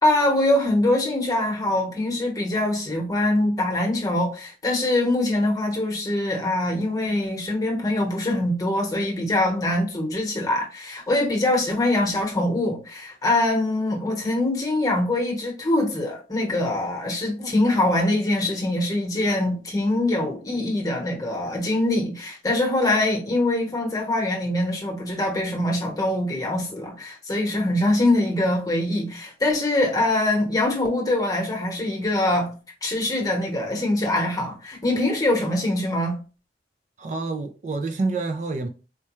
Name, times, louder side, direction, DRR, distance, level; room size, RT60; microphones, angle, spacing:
voice 1, 0.0-36.2, left 1 dB, 20° left, 0.9 m, -23 dB
voice 2, 37.0-38.7, right 3 dB, 40° right, 0.3 m, -27 dB
4.4 x 2.2 x 3.0 m
head